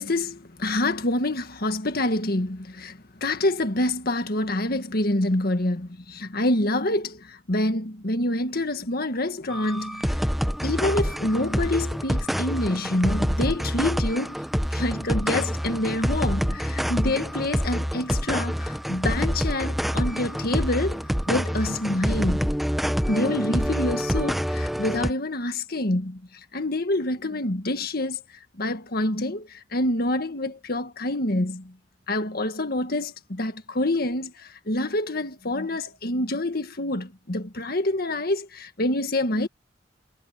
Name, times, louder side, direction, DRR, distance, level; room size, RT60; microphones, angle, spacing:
voice 1, 0.0-10.2 10.6-14.4 14.7-21.0 21.3-22.5 23.1-28.2 28.5-31.7 32.1-39.5, left 1 dB, 55° left, 1.7 m, -27 dB
sound 1, 9.5-25.1, equal, ahead, 0.8 m, -26 dB
head